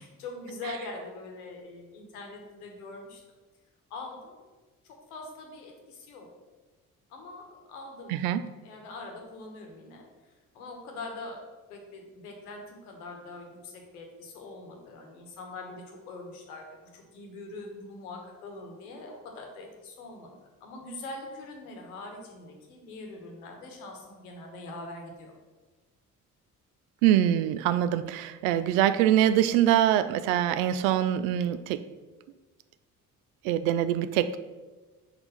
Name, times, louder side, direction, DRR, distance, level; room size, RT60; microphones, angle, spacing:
voice 1, 0.0-3.2 3.9-4.4 4.8-6.3 7.1-8.1 8.6-11.4 11.7-20.3 20.6-25.3, left 2 dB, 75° left, 2 dB, 1.3 m, -43 dB
voice 2, 8.1-8.4 27.0-31.8 33.4-34.4, right 11 dB, 65° right, 13 dB, 0.5 m, -24 dB
5.2 x 4.3 x 5.6 m, 1.3 s
figure-of-eight pair, 45°, 45 cm